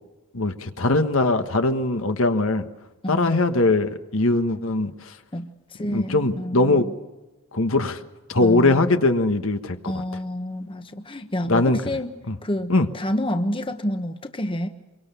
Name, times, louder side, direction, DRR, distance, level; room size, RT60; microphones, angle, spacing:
voice 1, 0.3-2.6 3.1-5.1 5.8-6.9 7.5-8.0 8.3-9.8 11.5-11.8 12.3-12.4 12.7-12.9, left 2 dB, 65° left, 1.4 m, -21 dB
voice 2, 3.0-3.4 5.3-6.9 8.4-9.0 9.8-12.1 12.4-14.7, left 1 dB, 25° left, 1.2 m, -29 dB
25.5 x 24.0 x 7.0 m
head